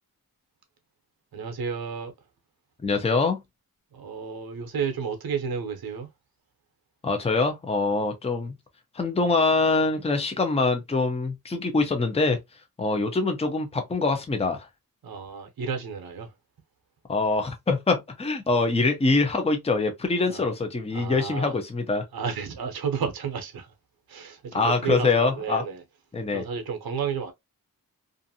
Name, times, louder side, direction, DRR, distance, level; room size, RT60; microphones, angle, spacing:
voice 1, 1.3-2.1 3.9-6.1 15.0-16.3 20.3-20.4 20.9-21.5 22.1-23.7 24.1-25.8 26.3-27.3, right 6 dB, 80° right, 0.7 m, -32 dB
voice 2, 2.8-3.4 7.0-8.5 8.9-12.4 12.8-14.7 17.1-22.0 24.5-25.6 26.1-26.4, left 3 dB, 15° left, 0.5 m, -24 dB
2.5 x 2.5 x 2.6 m
wide cardioid pair, 140°, 36 cm